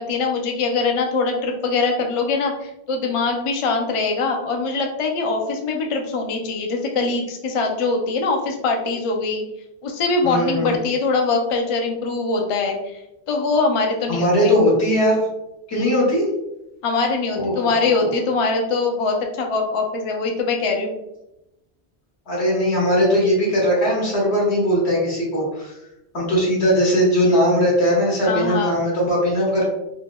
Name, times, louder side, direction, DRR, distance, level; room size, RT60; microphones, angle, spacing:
voice 1, 0.0-9.4 9.8-13.0 13.3-14.5 15.7-16.0 16.8-20.9 28.2-28.8, left 3 dB, 50° left, 2 dB, 0.4 m, -22 dB
voice 2, 10.2-10.7 14.1-15.1 15.7-16.3 17.3-17.5 18.0-18.1 22.3-25.7 26.1-29.7, equal, 90° left, -4 dB, 1.5 m, -19 dB
4.4 x 2.0 x 2.2 m, 0.91 s
omnidirectional pair, 1.1 m